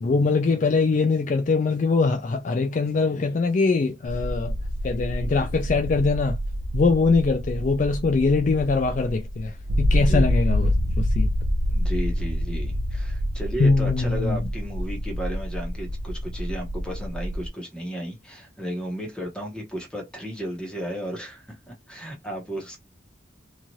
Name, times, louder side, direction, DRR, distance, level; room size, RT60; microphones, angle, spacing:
voice 1, 0.0-4.5 4.8-6.4 6.7-11.3 13.6-14.4, left 4 dB, 40° left, 0.3 m, -22 dB
sound 1, 4.1-17.5, equal, 80° right, 0.5 m, -27 dB
voice 2, 9.9-10.3 11.7-22.8, equal, 5° left, 0.9 m, -34 dB
3.0 x 2.4 x 2.7 m
head